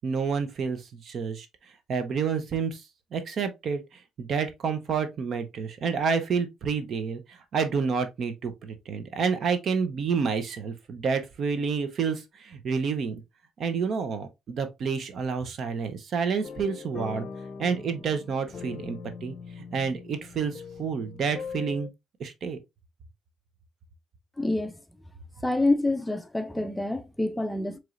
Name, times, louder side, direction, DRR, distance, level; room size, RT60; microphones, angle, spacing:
voice 1, 0.0-1.5 1.9-13.2 13.6-17.3 17.6-21.9 22.2-22.6, right 5 dB, 55° right, 0.8 m, -29 dB
sound 1, 16.4-21.9, left 5 dB, 50° left, 0.6 m, -41 dB
voice 2, 24.4-24.8 25.4-27.8, left 2 dB, 5° left, 0.5 m, -27 dB
4.7 x 3.1 x 2.5 m
cardioid pair, 85°, 0 cm